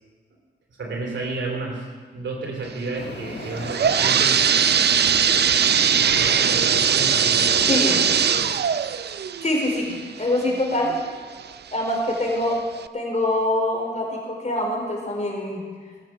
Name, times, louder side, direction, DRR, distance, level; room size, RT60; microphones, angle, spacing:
voice 1, 0.7-1.8 2.1-4.4 4.9-5.0 5.7-7.7, right 3 dB, 85° right, 0 dB, 3.2 m, -32 dB
sound 1, 2.9-8.5, left 4 dB, 65° left, 1.4 m, -37 dB
sound 2, 3.4-11.0 11.5-11.6 12.3-12.4 12.8-12.9, right 7 dB, 60° right, 0.5 m, -20 dB
voice 2, 7.7-8.0 9.4-11.0 11.7-12.6 12.9-15.6, left 1 dB, 40° left, -1 dB, 4.6 m, -24 dB
18.5 x 7.0 x 7.5 m, 1.5 s
cardioid pair, 60°, 19 cm